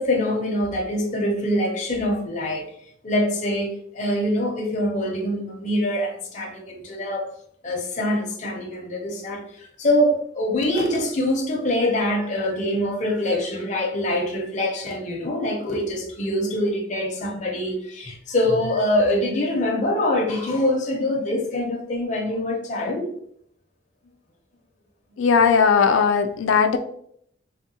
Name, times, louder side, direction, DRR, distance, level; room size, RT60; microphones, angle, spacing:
voice 1, 0.0-2.7 3.0-7.3 7.6-23.1, left 1 dB, 40° left, 0.6 m, -24 dB
voice 2, 25.2-26.8, left 6 dB, 90° left, 0.4 m, -18 dB
3.5 x 2.2 x 2.7 m
head